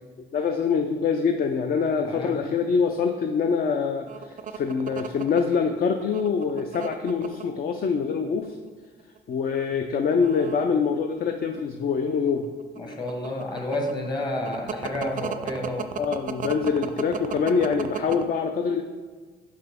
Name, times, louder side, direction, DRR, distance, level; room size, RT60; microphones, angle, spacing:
voice 1, 0.2-8.6 9.3-12.5 16.0-18.8, left 5 dB, 45° left, 6 dB, 0.4 m, -25 dB
voice 2, 2.0-2.4 12.7-16.0, left 1 dB, 20° left, 2 dB, 1.0 m, -30 dB
sound 1, 4.1-7.5 8.2-8.7 9.0-9.2 10.0-11.7 12.0-18.2, right 8 dB, 40° right, 0.4 m, -34 dB
5.7 x 5.6 x 3.6 m, 1.4 s
cardioid pair, 90°, 20 cm